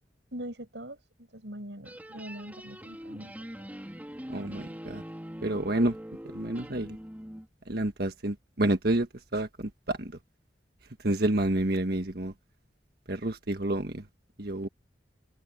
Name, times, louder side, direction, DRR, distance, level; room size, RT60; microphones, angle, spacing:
voice 1, 0.3-3.3 3.7-3.8, right 1 dB, 75° right, 7.5 m, -42 dB
sound 1, 1.8-7.5, equal, 10° right, 2.9 m, -43 dB
voice 2, 4.3-5.0 5.4-6.0 6.3-7.0 7.7-10.1 11.0-12.3 13.1-14.0 14.4-14.7, right 1 dB, 60° right, 1.5 m, -29 dB
open air
head